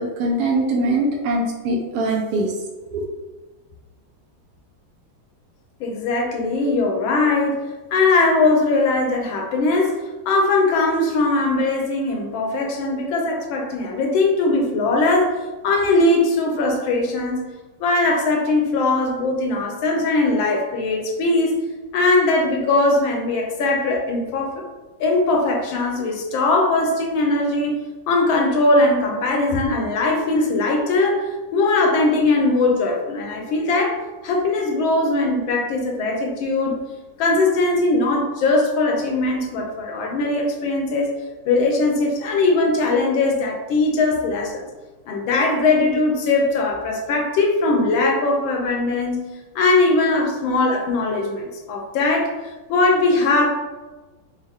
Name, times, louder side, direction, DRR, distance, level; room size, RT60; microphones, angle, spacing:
voice 1, 0.0-2.5 2.9-3.0, right 2 dB, 75° right, -1 dB, 0.9 m, -22 dB
voice 2, 5.8-7.6 7.9-10.0 10.3-15.3 15.6-17.5 17.8-21.6 21.9-24.6 25.0-27.8 28.1-34.0 34.2-36.8 37.2-41.1 41.5-44.6 45.1-49.3 49.5-52.3 52.7-53.5, left 2 dB, 75° left, 1 dB, 1.4 m, -20 dB
4.2 x 2.0 x 3.5 m, 1.2 s
omnidirectional pair, 2.3 m